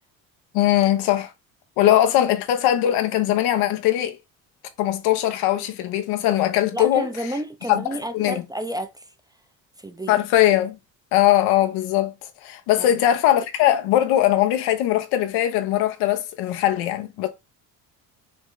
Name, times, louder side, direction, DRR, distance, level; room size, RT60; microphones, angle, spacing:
voice 1, 0.5-1.3 1.8-4.2 4.8-7.1 7.7-7.8 8.1-8.4 10.1-10.8 11.1-12.1 12.4-17.3, left 12 dB, 90° left, 0.9 m, -20 dB
voice 2, 6.7-9.1 9.8-10.2 12.8-13.0, right 1 dB, 10° right, 0.5 m, -31 dB
5.9 x 2.1 x 3.9 m
cardioid pair, 95°, 39 cm